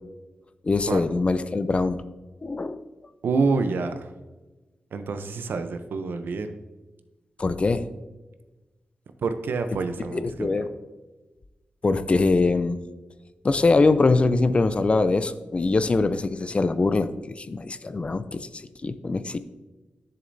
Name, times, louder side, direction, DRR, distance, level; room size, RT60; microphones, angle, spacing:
voice 1, 0.6-2.0 2.4-2.8 7.4-7.9 10.1-10.7 11.8-12.8 13.4-18.5 18.8-19.4, left 3 dB, 35° left, 12 dB, 0.5 m, -23 dB
voice 2, 3.2-4.1 4.9-6.5 9.2-10.7, right 4 dB, 80° right, 8 dB, 0.6 m, -27 dB
10.5 x 6.7 x 2.7 m, 1.2 s
wide cardioid pair, 90°, 3 cm